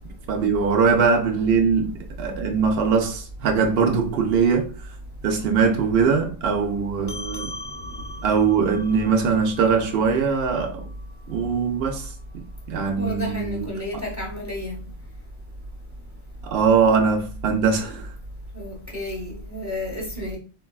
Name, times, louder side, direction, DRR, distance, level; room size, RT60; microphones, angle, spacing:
voice 1, 0.3-4.9 5.2-7.5 8.2-10.9 11.3-14.0 16.4-18.1, right 5 dB, 70° right, 0.8 m, -22 dB
sound 1, 7.1-11.9, left 1 dB, 45° left, 0.3 m, -41 dB
voice 2, 13.0-14.8 18.5-20.4, left 1 dB, 15° right, 0.8 m, -31 dB
3.9 x 2.2 x 2.3 m
omnidirectional pair, 1.1 m